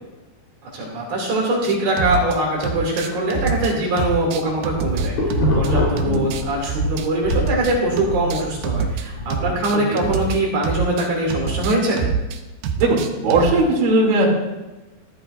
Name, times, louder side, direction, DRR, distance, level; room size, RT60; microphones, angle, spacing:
voice 1, 0.7-12.0, right 1 dB, 70° right, -3 dB, 4.6 m, -22 dB
sound 1, 1.6-2.4 2.6-5.7 6.0-9.1 9.3-13.6, right 6 dB, 90° right, 1.8 m, -26 dB
sound 2, 4.5-6.9 7.2-9.6, left 2 dB, 60° left, 5.3 m, -24 dB
voice 2, 12.8-14.3, right 2 dB, 55° right, -3 dB, 4.0 m, -18 dB
15.5 x 13.0 x 2.5 m, 1.1 s
omnidirectional pair, 5.0 m